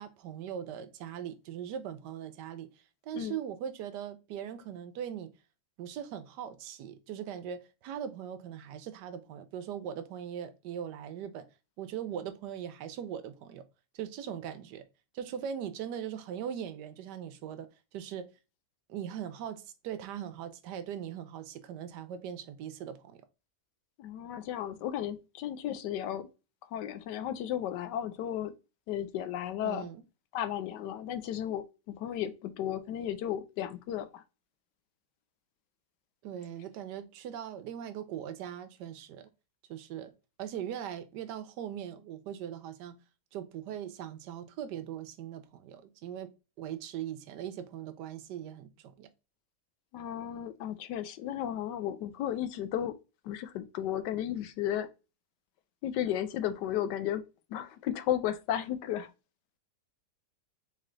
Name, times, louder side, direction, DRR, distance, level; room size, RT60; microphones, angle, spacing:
voice 1, 0.0-2.7 3.0-5.3 5.8-11.5 11.8-13.6 13.9-14.8 15.1-18.3 18.9-23.2 29.6-30.0 36.2-39.3 39.7-40.1 40.4-43.0 43.3-46.3 46.6-49.1, right 9 dB, 85° right, 1.2 m, -40 dB
voice 2, 24.0-26.3 26.7-28.5 28.9-29.9 30.3-34.2 49.9-52.9 53.2-54.9 55.8-57.2 57.5-59.1, left 11 dB, 85° left, 1.2 m, -34 dB
3.8 x 3.2 x 3.7 m
omnidirectional pair, 1.8 m